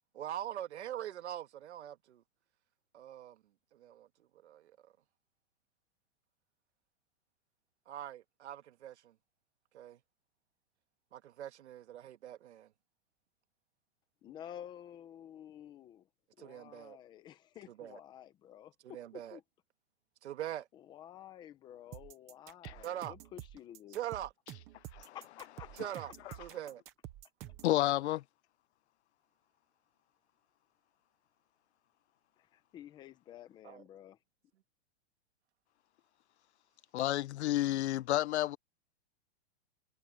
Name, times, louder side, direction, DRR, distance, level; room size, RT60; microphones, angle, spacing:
voice 1, 0.1-2.2 2.9-3.4 3.7-4.1 4.4-4.9 7.9-9.1 9.7-10.0 11.1-12.7 16.4-17.0 17.7-18.0 18.8-19.4 20.2-20.7 22.8-23.1 23.9-24.3 25.8-26.1 26.4-26.8 33.6-33.8, right 12 dB, 75° right, 1.8 m, -43 dB
voice 2, 14.2-16.1 16.4-18.7 19.1-19.4 20.7-24.0 25.1-25.9 32.4-34.2, left 10 dB, 15° left, 0.8 m, -51 dB
sound 1, 21.9-27.8, right 13 dB, 10° right, 0.4 m, -49 dB
voice 3, 27.6-28.2 36.9-38.6, left 15 dB, 75° left, 0.6 m, -31 dB
supercardioid pair, 170°, 34 cm